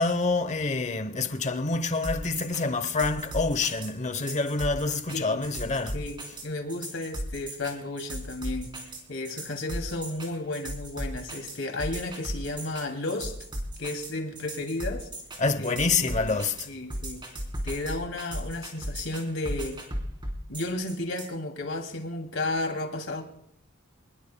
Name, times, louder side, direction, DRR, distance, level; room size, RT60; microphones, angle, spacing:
voice 1, 0.0-6.0 15.4-16.7, left 3 dB, 35° left, 0.9 m, -27 dB
sound 1, 1.9-21.3, right 1 dB, 25° right, 3.9 m, -36 dB
voice 2, 5.1-5.4 5.9-8.7 9.1-13.3 13.8-15.1 15.6-16.4 16.7-17.2 17.6-19.8 20.5-23.2, left 2 dB, 75° left, 2.7 m, -33 dB
26.5 x 20.5 x 2.3 m
head